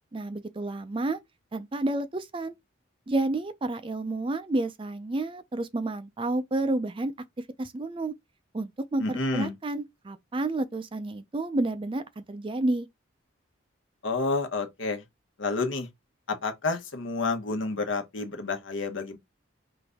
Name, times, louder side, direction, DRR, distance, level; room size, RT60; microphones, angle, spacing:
voice 1, 0.1-1.2 1.5-2.5 3.1-7.1 7.6-8.1 8.5-12.9, right 2 dB, 25° right, 0.4 m, -30 dB
voice 2, 9.0-9.5 14.0-15.0 15.4-15.9 16.3-19.2, left 3 dB, 75° left, 1.1 m, -29 dB
5.0 x 2.6 x 3.5 m
head